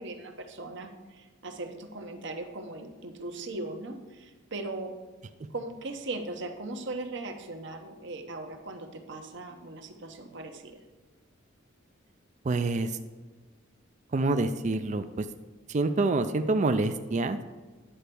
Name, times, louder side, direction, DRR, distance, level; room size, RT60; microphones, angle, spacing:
voice 1, 0.0-4.9 5.5-10.8, right 2 dB, 60° right, 5 dB, 1.0 m, -39 dB
voice 2, 12.4-13.0 14.1-15.3 15.7-17.4, right 3 dB, 35° right, 9 dB, 0.4 m, -27 dB
10.5 x 4.5 x 6.8 m, 1.3 s
head